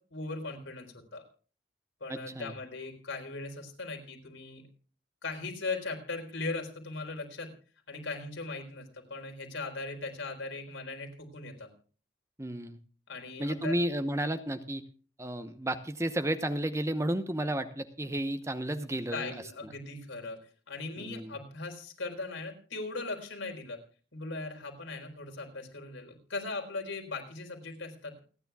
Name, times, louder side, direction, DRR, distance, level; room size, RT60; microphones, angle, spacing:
voice 1, 0.1-1.2 2.0-4.7 5.2-7.5 7.9-11.7 13.1-13.7 19.1-20.4 20.7-23.8 24.1-28.1, left 3 dB, 85° left, 3 dB, 4.1 m, -39 dB
voice 2, 2.1-2.5 12.4-12.8 13.4-14.8 15.2-19.3 21.0-21.3, right 1 dB, 15° right, 10 dB, 0.9 m, -32 dB
28.5 x 9.9 x 2.3 m, 0.40 s
head